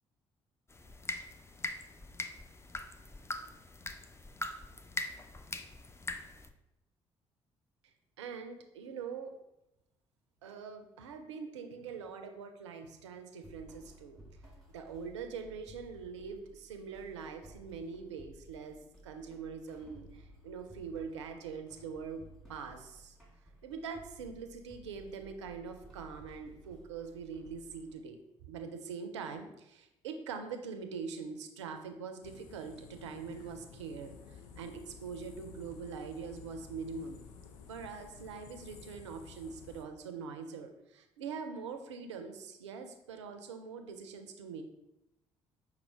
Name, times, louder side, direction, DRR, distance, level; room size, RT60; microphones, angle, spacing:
sound 1, 0.7-6.5, left 2 dB, 20° left, 0.4 m, -42 dB
voice 1, 8.2-9.3 10.4-14.2 14.7-18.8 19.0-22.2 22.5-23.2 23.6-28.2 28.5-37.2 37.7-44.6, right 5 dB, 85° right, 6 dB, 0.4 m, -43 dB
sound 2, 13.4-27.9, right 1 dB, ahead, 1.4 m, -57 dB
sound 3, 32.2-39.8, left 6 dB, 75° left, 0.4 m, -53 dB
5.4 x 2.1 x 4.2 m, 0.88 s
hypercardioid pair, 45°, 15 cm